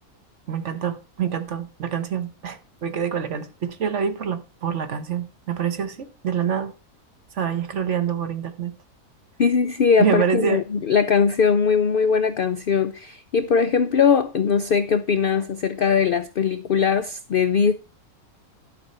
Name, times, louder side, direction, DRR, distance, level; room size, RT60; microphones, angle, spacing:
voice 1, 0.5-6.7 7.3-8.7 10.0-10.6, right 7 dB, 55° right, 1.3 m, -26 dB
voice 2, 9.4-17.7, left 6 dB, 65° left, 0.5 m, -20 dB
12.0 x 5.2 x 5.4 m
omnidirectional pair, 1.5 m